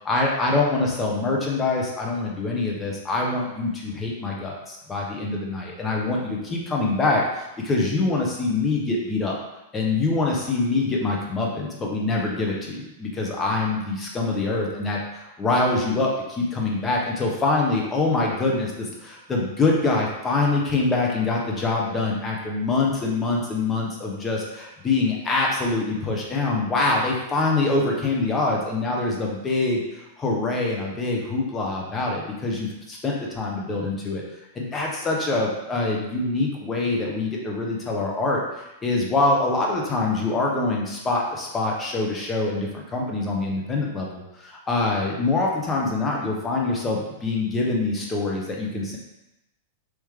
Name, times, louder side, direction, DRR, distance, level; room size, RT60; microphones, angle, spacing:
voice 1, 0.0-9.4 9.7-29.8 30.2-34.2 34.5-38.4 38.8-49.0, left 3 dB, 20° left, -2 dB, 1.0 m, -24 dB
3.1 x 3.1 x 3.6 m, 0.92 s
hypercardioid pair, 105°, 0 cm